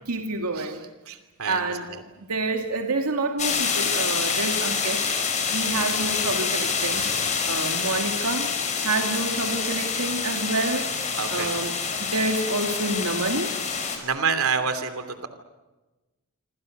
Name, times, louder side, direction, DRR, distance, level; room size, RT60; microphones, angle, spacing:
voice 1, 0.1-0.8 1.5-1.9 2.3-5.0 5.4-8.5 8.8-13.5, right 2 dB, 85° right, 4 dB, 2.4 m, -28 dB
voice 2, 1.1-2.0 11.2-11.5 14.0-15.3, right 6 dB, 70° right, 9 dB, 2.9 m, -28 dB
sound 1, 3.4-14.0, left 5 dB, 30° left, 5.1 m, -27 dB
27.0 x 26.0 x 6.7 m, 1.1 s
head